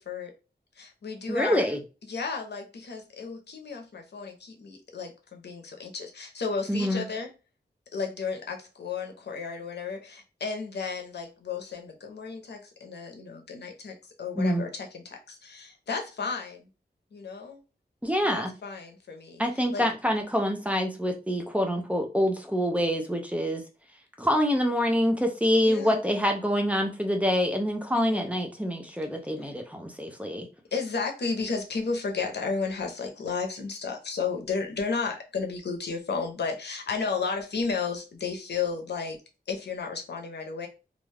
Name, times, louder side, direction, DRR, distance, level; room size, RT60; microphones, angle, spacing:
voice 1, 0.8-1.7 2.1-7.3 7.9-16.7 17.1-17.6 18.3-19.8 25.6-26.0 27.9-28.3 29.4-29.5 30.7-39.2 39.5-40.7, left 5 dB, 75° left, 0.7 m, -33 dB
voice 2, 1.3-1.8 6.7-7.0 14.4-14.6 18.0-18.5 19.4-23.6 24.2-30.5, equal, 10° right, 0.5 m, -26 dB
2.4 x 2.2 x 3.2 m
wide cardioid pair, 100°, 18 cm